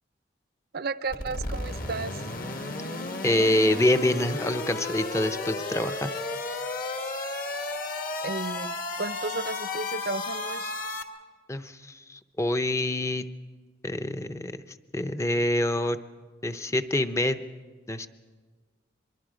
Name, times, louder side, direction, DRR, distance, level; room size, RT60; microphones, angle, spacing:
voice 1, 0.7-2.2 8.2-10.7, right 4 dB, 55° right, 14 dB, 0.5 m, -33 dB
sound 1, 1.1-11.0, left 2 dB, 45° left, 1.3 m, -33 dB
voice 2, 3.2-6.2 11.5-13.2 13.8-14.5 14.9-16.0 16.4-17.4 17.9-18.1, left 1 dB, 15° left, 10 dB, 0.6 m, -26 dB
24.5 x 22.5 x 5.0 m, 1.5 s
head